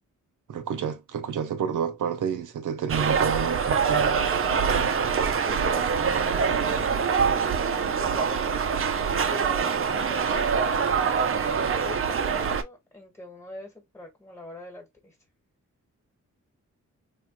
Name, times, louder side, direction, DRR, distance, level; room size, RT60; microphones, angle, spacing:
voice 1, 0.5-4.2, right 7 dB, 80° right, 0.7 m, -29 dB
sound 1, 2.9-12.6, right 6 dB, 45° right, 0.5 m, -24 dB
voice 2, 5.4-7.5 7.8-10.9 11.7-15.2, left 2 dB, 10° left, 1.2 m, -43 dB
3.0 x 2.2 x 2.9 m
wide cardioid pair, 100°, 31 cm